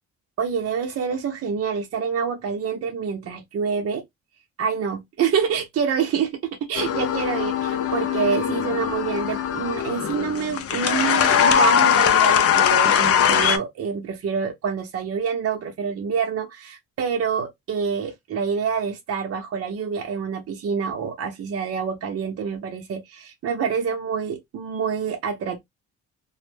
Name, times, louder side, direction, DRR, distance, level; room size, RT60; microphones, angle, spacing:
voice 1, 0.4-4.0 4.6-25.6, right 6 dB, 50° right, 0.7 m, -27 dB
sound 1, 6.8-13.6, left 8 dB, 50° left, 0.5 m, -20 dB
2.1 x 2.0 x 3.2 m
cardioid pair, 90°, 30 cm